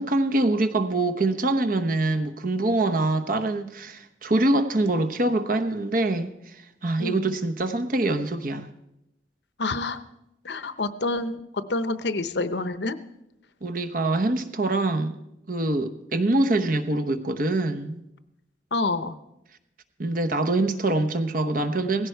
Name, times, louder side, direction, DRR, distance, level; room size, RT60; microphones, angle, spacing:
voice 1, 0.0-6.3 6.8-8.7 13.6-15.1 15.5-18.0 20.0-22.1, right 2 dB, 45° right, 9 dB, 1.0 m, -24 dB
voice 2, 9.6-10.0 10.4-13.0 18.7-19.2, left 3 dB, 65° left, 13 dB, 0.8 m, -28 dB
17.0 x 16.0 x 4.6 m, 0.87 s
head